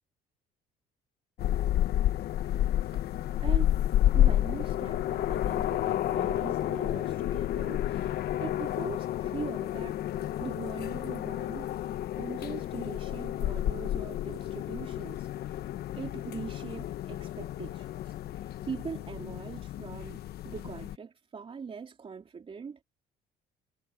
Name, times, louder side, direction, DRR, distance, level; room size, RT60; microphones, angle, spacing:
sound 1, 1.4-21.0, left 12 dB, 70° left, 1.1 m, -30 dB
voice 1, 3.4-3.8 4.1-10.0 10.4-15.6 15.9-22.8, right 6 dB, 35° right, 3.8 m, -42 dB
cardioid pair, 110°, 17 cm